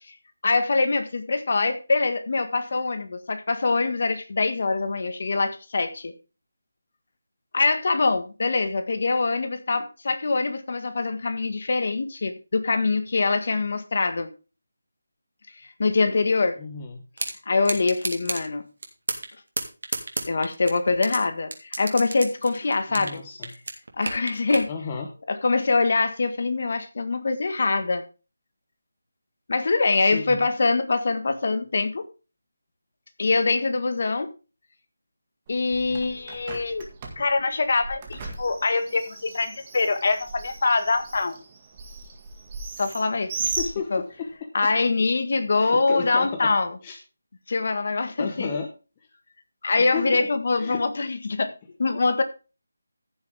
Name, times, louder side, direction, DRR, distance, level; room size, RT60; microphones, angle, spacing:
voice 1, 0.4-6.1 7.5-14.3 15.8-16.6 17.5-18.6 20.3-23.2 24.0-24.7 25.3-28.0 29.5-32.0 33.2-34.3 35.5-36.9 37.2-41.4 42.8-43.3 43.9-44.0 44.5-46.7 47.5-48.5 49.6-51.5 51.8-52.2, left 3 dB, 45° left, 9 dB, 1.6 m, -24 dB
voice 2, 16.6-17.0 22.9-23.5 24.7-25.1 30.0-30.5 43.4-44.5 45.6-46.5 46.8-47.0 48.2-48.7 49.8-50.3 50.6-50.8, left 6 dB, 15° left, 3 dB, 1.0 m, -33 dB
sound 1, 17.2-17.3 17.7-18.4 18.8-19.3 19.6-21.2 21.5-23.2 23.4-24.7, right 2 dB, 60° right, 2.7 m, -30 dB
Bird, 35.5-44.4, right 4 dB, 20° right, 1.8 m, -37 dB
15.0 x 7.2 x 3.6 m, 0.32 s
figure-of-eight pair, 175°, 0 cm